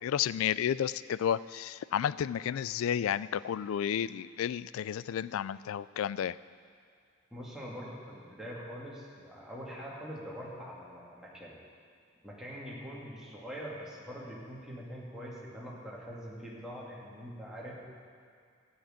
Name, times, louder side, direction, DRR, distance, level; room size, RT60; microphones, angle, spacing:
voice 1, 0.0-6.4, left 9 dB, 80° left, 18 dB, 0.3 m, -32 dB
voice 2, 7.3-11.5 12.2-17.9, equal, 5° right, -7 dB, 2.5 m, -43 dB
13.0 x 6.6 x 9.2 m, 2.3 s
head